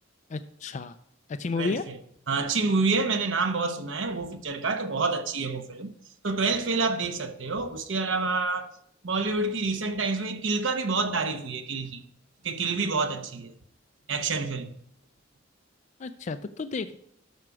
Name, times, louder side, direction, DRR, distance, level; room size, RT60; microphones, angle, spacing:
voice 1, 0.3-1.0 1.3-1.9 16.0-17.0, left 4 dB, 40° left, 0.4 m, -32 dB
voice 2, 2.3-5.9 6.2-8.7 9.0-12.0 12.4-13.5 14.1-14.8, right 3 dB, 90° right, 1.0 m, -28 dB
12.0 x 6.2 x 4.8 m
head